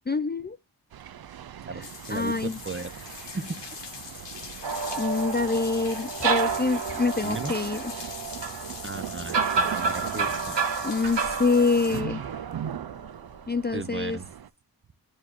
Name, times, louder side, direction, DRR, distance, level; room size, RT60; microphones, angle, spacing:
voice 1, 0.1-0.6 2.1-2.6 5.0-7.8 10.8-12.2 13.5-14.2, left 4 dB, 25° left, 0.4 m, -26 dB
sound 1, 0.9-14.5, right 9 dB, 60° right, 0.5 m, -40 dB
voice 2, 1.7-2.4 2.6-2.9 3.3-3.6 7.2-7.5 8.8-10.6 13.7-14.3, right 3 dB, 30° right, 0.9 m, -36 dB
sound 2, 1.8-12.0, left 5 dB, 90° left, 1.4 m, -42 dB
sound 3, 4.6-13.4, right 5 dB, 80° right, 0.9 m, -30 dB
10.5 x 6.3 x 2.6 m
wide cardioid pair, 55°, 42 cm